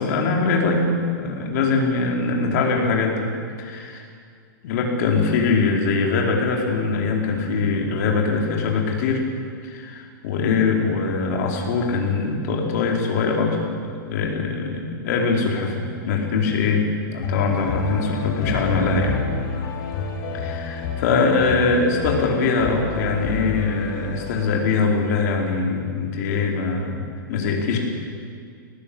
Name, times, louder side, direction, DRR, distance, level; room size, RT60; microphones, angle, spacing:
voice 1, 0.0-3.3 3.6-4.0 4.6-9.2 9.6-19.2 20.3-27.8, left 4 dB, 50° left, 0 dB, 4.6 m, -22 dB
sound 1, 17.2-24.4, left 4 dB, 35° left, 3.6 m, -29 dB
21.0 x 19.0 x 8.7 m, 2.2 s
hypercardioid pair, 155°, 12 cm